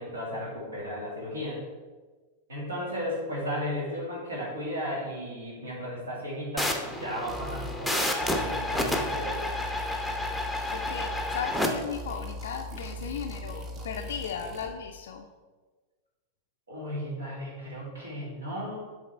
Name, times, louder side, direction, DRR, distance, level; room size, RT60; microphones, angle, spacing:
voice 1, 0.0-1.6 2.5-9.4 16.7-18.9, equal, 70° right, -3 dB, 2.0 m, -35 dB
sound 1, 6.6-11.7, left 1 dB, ahead, 0.7 m, -30 dB
sound 2, 7.3-7.8 8.2-11.5 11.7-14.7, left 1 dB, 30° right, 1.1 m, -39 dB
voice 2, 10.7-15.3, left 7 dB, 60° left, 3 dB, 0.4 m, -36 dB
6.8 x 3.9 x 4.3 m, 1.3 s
figure-of-eight pair, 90°, 0 cm